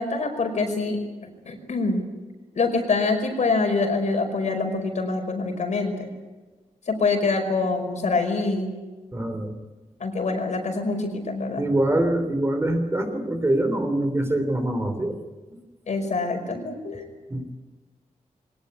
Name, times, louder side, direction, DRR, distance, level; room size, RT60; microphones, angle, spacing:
voice 1, 0.0-2.0 2.5-6.1 6.9-8.7 10.0-11.7 15.9-17.0, left 3 dB, 65° left, 4 dB, 5.3 m, -25 dB
voice 2, 9.1-9.6 11.6-15.2 17.3-17.5, right 1 dB, 20° right, 6 dB, 3.1 m, -24 dB
23.0 x 19.0 x 9.8 m, 1.2 s
wide cardioid pair, 165°, 13 cm